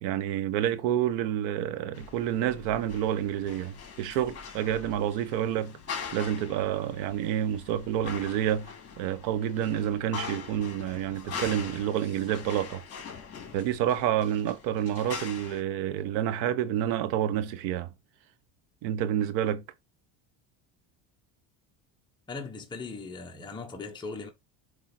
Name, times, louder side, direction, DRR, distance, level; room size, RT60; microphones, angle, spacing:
voice 1, 0.0-5.8 6.1-12.8 13.5-17.9 18.8-19.6, right 10 dB, 80° right, 1.1 m, -29 dB
sound 1, 1.9-15.6, left 6 dB, 35° left, 3.0 m, -42 dB
voice 2, 22.3-24.3, left 4 dB, 10° left, 1.1 m, -39 dB
7.7 x 3.6 x 4.4 m
cardioid pair, 140°, 42 cm